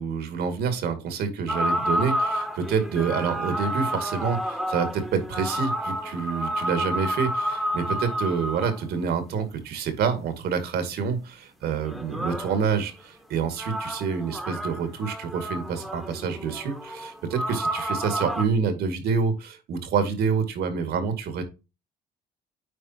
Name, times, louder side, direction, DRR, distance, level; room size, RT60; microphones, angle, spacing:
voice 1, 0.0-21.4, right 6 dB, 70° right, 8 dB, 2.4 m, -27 dB
sound 1, 1.5-8.8 11.7-12.6 13.6-18.4, equal, ahead, 1.4 m, -30 dB
9.4 x 5.1 x 3.0 m, 0.27 s
cardioid pair, 110°, 17 cm